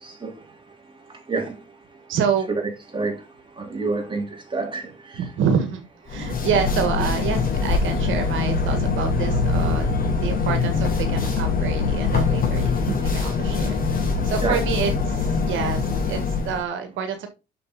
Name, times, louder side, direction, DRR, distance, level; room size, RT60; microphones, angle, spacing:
voice 1, 0.0-0.3 1.3-1.6 2.5-2.6 2.9-3.2 3.6-5.3 14.4-14.6, right 3 dB, 25° right, 3.9 m, -28 dB
voice 2, 2.1-2.5 5.2-9.9 10.2-13.8 14.2-17.3, right 7 dB, 85° right, 1.6 m, -27 dB
sound 1, 6.1-16.6, left 4 dB, 45° left, 4.2 m, -23 dB
7.7 x 6.5 x 4.1 m
cardioid pair, 90°, 20 cm